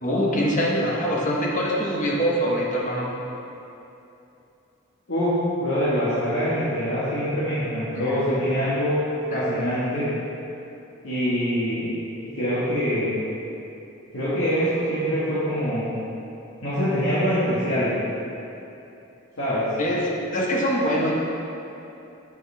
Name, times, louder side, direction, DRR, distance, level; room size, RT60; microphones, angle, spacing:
voice 1, 0.0-3.1 7.9-8.1 9.3-9.4 19.8-21.1, equal, 35° left, -3 dB, 0.9 m, -24 dB
voice 2, 5.1-9.0 9.3-10.1 11.0-11.9 12.3-13.2 14.1-15.9 16.6-17.9 19.4-19.7, equal, 80° left, -12 dB, 1.7 m, -24 dB
8.0 x 7.3 x 3.4 m, 2.8 s
head